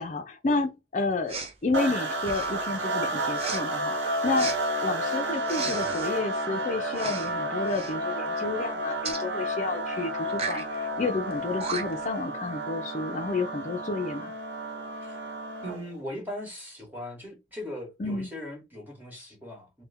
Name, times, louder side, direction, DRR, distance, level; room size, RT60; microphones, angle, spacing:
voice 1, 0.0-4.5 4.8-14.3 18.0-18.3, left 3 dB, 45° left, 0.4 m, -30 dB
Respiratory sounds, 1.3-1.5 2.2-2.6 3.3-3.6 4.3-4.6 5.4-6.1 6.9-7.3 7.6-7.9 9.0-9.2 10.3-10.6 11.3-11.4 11.6-12.1, right 4 dB, 35° right, 0.6 m, -35 dB
sound 1, 1.7-15.9, right 1 dB, 85° right, 0.8 m, -31 dB
voice 2, 15.6-19.8, left 1 dB, 10° right, 1.3 m, -39 dB
3.2 x 2.1 x 3.4 m
head